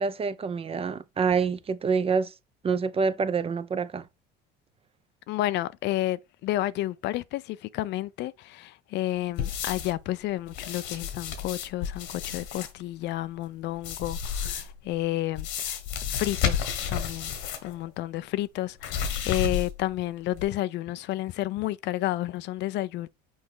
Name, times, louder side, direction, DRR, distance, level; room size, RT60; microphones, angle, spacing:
voice 1, 0.0-2.3 2.6-4.1, right 5 dB, 30° right, 0.6 m, -27 dB
voice 2, 5.3-15.8 16.1-17.3 17.6-23.1, left 15 dB, 60° left, 0.5 m, -31 dB
sound 1, 9.4-10.0 10.5-12.7 13.8-14.8 15.4-17.7 18.0-18.1 18.8-19.9 20.3-20.4, left 8 dB, 80° left, 1.5 m, -31 dB
6.3 x 4.3 x 3.7 m
supercardioid pair, 90°, 20 cm